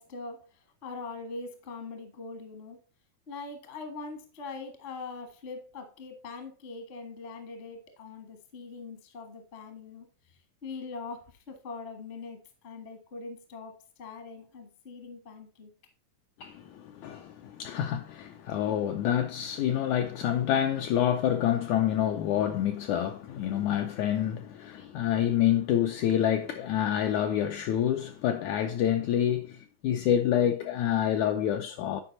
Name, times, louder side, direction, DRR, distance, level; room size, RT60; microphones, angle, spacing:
voice 1, 0.0-2.8 3.3-15.7, left 4 dB, 45° left, 0.7 m, -42 dB
voice 2, 16.4-32.0, left 10 dB, 85° left, 1.7 m, -27 dB
9.8 x 4.9 x 4.0 m
omnidirectional pair, 3.9 m